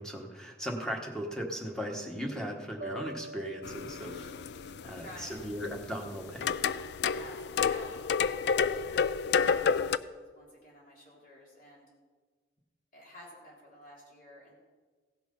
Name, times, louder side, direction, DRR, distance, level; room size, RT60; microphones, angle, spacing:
voice 1, 0.0-4.3 4.8-6.5, equal, 5° left, 1 dB, 1.4 m, -37 dB
sound 1, 2.8-5.9, right 2 dB, 45° right, 0.6 m, -46 dB
sound 2, 3.6-10.0, left 6 dB, 70° left, 0.3 m, -30 dB
voice 2, 3.9-4.4 4.8-5.5 7.1-11.9 12.9-14.5, left 1 dB, 50° left, -3 dB, 3.5 m, -52 dB
17.0 x 6.1 x 5.4 m, 1.4 s
head